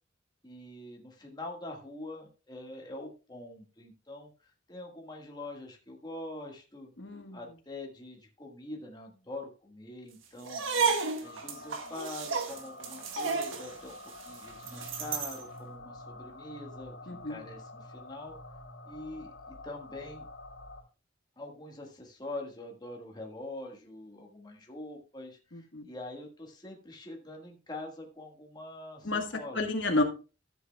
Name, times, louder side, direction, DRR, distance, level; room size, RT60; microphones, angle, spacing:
voice 1, 0.4-6.9 7.3-10.6 11.2-14.0 14.2-18.4 18.9-20.3 21.4-29.6, left 2 dB, 20° left, 1 dB, 1.5 m, -44 dB
voice 2, 7.0-7.4 17.1-17.4 25.5-25.8 29.0-29.3 29.5-30.0, left 2 dB, 65° left, 4 dB, 1.4 m, -30 dB
sound 1, 10.4-15.4, right 5 dB, 90° right, 1.5 m, -32 dB
sound 2, 11.2-20.8, left 2 dB, 85° left, 3.3 m, -48 dB
13.5 x 7.9 x 2.2 m, 0.33 s
head